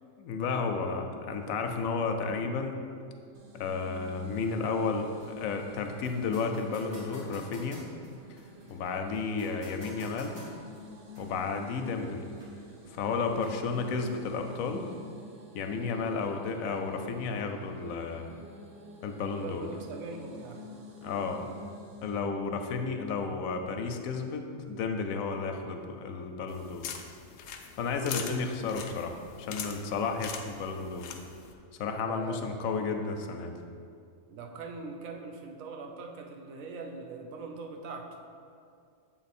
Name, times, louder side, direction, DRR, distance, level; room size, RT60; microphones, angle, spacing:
voice 1, 0.0-2.8 3.5-5.1 5.4-7.8 8.7-10.4 11.2-12.3 12.9-14.9 15.5-18.3 19.0-19.7 21.0-21.5 22.0-26.9 27.7-31.1 31.8-33.5, left 4 dB, 85° left, 5 dB, 1.0 m, -32 dB
sound 1, 3.3-22.3, left 1 dB, 55° right, 0.4 m, -49 dB
sound 2, 4.3-14.3, equal, 20° right, 1.5 m, -53 dB
voice 2, 19.4-20.6 21.3-21.5 32.0-32.6 34.3-38.2, right 3 dB, 80° right, 3 dB, 1.1 m, -42 dB
sound 3, 26.5-31.5, left 7 dB, 65° left, 0.8 m, -42 dB
7.4 x 3.9 x 4.2 m, 2.4 s
omnidirectional pair, 1.4 m